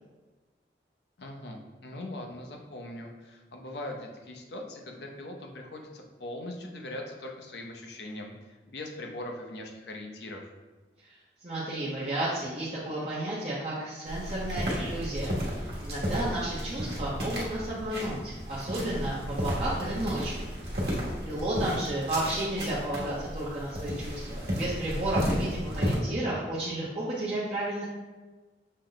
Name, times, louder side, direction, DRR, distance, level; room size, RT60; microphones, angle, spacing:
voice 1, 1.2-10.5, left 1 dB, 75° left, 2 dB, 0.6 m, -41 dB
voice 2, 11.4-15.4 15.8-20.5 21.2-27.8, right 1 dB, 35° right, -9 dB, 0.7 m, -32 dB
sound 1, 14.1-26.0, equal, 65° right, 1.1 m, -33 dB
6.4 x 2.1 x 3.8 m, 1.2 s
head